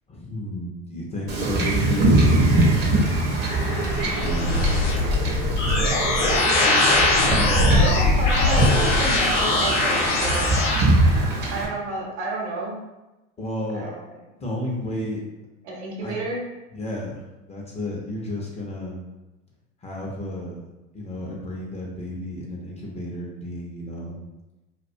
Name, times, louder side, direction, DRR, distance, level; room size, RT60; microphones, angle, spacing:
voice 1, 0.1-2.8 3.5-4.6 5.7-5.9 7.2-8.0 13.4-13.9 14.4-15.2 16.0-16.1 16.7-17.2 17.5-19.0 19.8-20.6 20.9-24.2, left 1 dB, 20° left, -2 dB, 0.5 m, -32 dB
Wind / Ocean / Boat Water vehicle, 1.3-11.6, right 2 dB, 30° right, 0.6 m, -22 dB
sound 1, 3.1-10.8, left 2 dB, 85° left, 0.6 m, -21 dB
voice 2, 7.7-10.7 11.5-12.8 13.7-14.1 15.6-16.4, right 2 dB, 75° right, -2 dB, 0.9 m, -30 dB
2.3 x 2.2 x 2.6 m, 1.1 s
hypercardioid pair, 95°, 35 cm